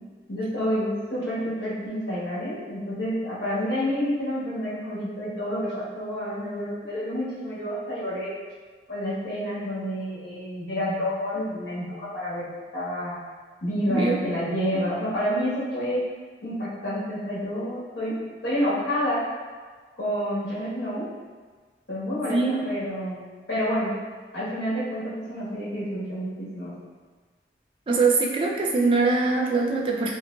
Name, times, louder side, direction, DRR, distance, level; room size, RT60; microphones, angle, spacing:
voice 1, 0.3-8.3 8.9-13.2 13.6-16.0 16.4-19.3 20.0-21.1 21.9-23.2 23.5-23.9 24.3-26.8, equal, 75° left, -9 dB, 1.1 m, -29 dB
voice 2, 13.9-14.2 22.3-22.6 27.9-30.2, right 3 dB, 30° right, -1 dB, 0.3 m, -22 dB
3.7 x 3.0 x 2.2 m, 1.5 s
head